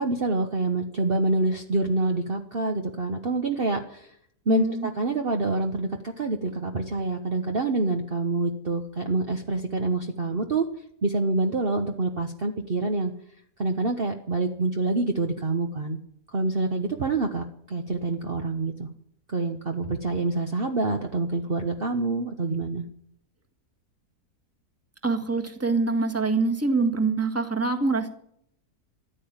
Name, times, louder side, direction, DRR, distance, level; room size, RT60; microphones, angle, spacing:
voice 1, 0.0-4.1 4.5-10.6 11.0-13.1 13.6-16.0 16.3-18.9 19.3-22.8, right 3 dB, 40° right, 4 dB, 1.2 m, -26 dB
voice 2, 4.5-4.9 25.0-28.1, right 3 dB, 10° right, 4 dB, 1.7 m, -25 dB
14.5 x 11.0 x 8.8 m, 0.69 s
omnidirectional pair, 1.6 m